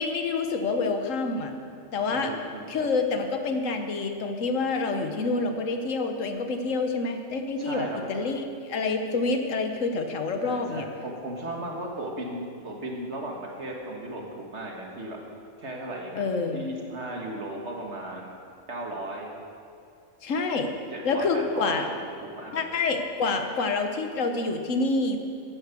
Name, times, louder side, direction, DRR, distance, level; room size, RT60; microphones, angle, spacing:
voice 1, 0.0-1.5 1.9-2.3 2.7-10.8 16.2-16.6 20.2-20.7 21.0-21.9 22.5-25.2, left 3 dB, 75° left, 5 dB, 1.4 m, -27 dB
voice 2, 2.1-2.6 7.6-8.0 10.4-15.2 15.6-16.2 16.5-18.3 18.7-19.3 20.9-22.7, right 1 dB, 60° right, 0 dB, 2.0 m, -36 dB
11.0 x 10.5 x 7.0 m, 2.4 s
omnidirectional pair, 1.3 m